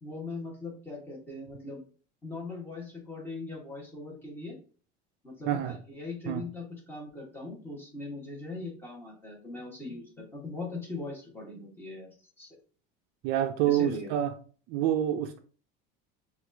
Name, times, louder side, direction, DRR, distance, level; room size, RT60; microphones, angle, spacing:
voice 1, 0.0-1.8 2.2-4.6 5.2-12.6 13.6-14.1, left 3 dB, 10° left, 1.2 m, -40 dB
voice 2, 5.5-5.8 6.3-6.4 13.2-14.3 14.7-15.4, right 11 dB, 55° right, 0.4 m, -27 dB
6.0 x 2.4 x 2.6 m
cardioid pair, 170°, 20 cm